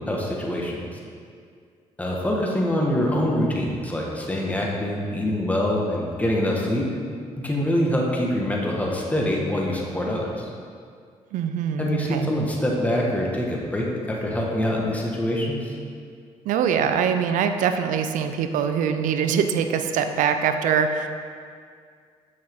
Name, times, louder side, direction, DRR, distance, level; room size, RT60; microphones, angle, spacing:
voice 1, 0.1-1.0 2.0-6.9 7.4-10.5 11.8-15.7, left 1 dB, 10° left, -3 dB, 1.5 m, -25 dB
voice 2, 11.3-12.3 16.5-21.1, right 7 dB, 75° right, 8 dB, 0.5 m, -23 dB
7.5 x 6.1 x 3.6 m, 2.2 s
supercardioid pair, 70°, 13 cm